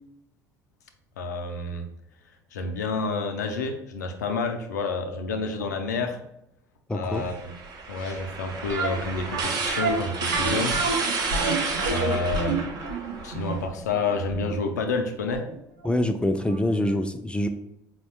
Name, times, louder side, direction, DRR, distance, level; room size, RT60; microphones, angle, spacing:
voice 1, 1.2-1.9 2.5-6.2 6.9-7.5 7.9-10.8 11.9-12.6 13.2-15.5, left 3 dB, 85° left, 6 dB, 0.4 m, -29 dB
voice 2, 6.9-7.3 15.8-17.5, left 1 dB, 10° left, 8 dB, 0.3 m, -25 dB
sound 1, 7.1-13.6, right 4 dB, 50° right, 0.7 m, -31 dB
sound 2, 8.7-15.6 15.8-15.9 16.5-16.6 16.9-17.0, right 3 dB, 85° right, 0.6 m, -29 dB
4.5 x 2.1 x 2.8 m, 0.83 s
hypercardioid pair, 60°, 9 cm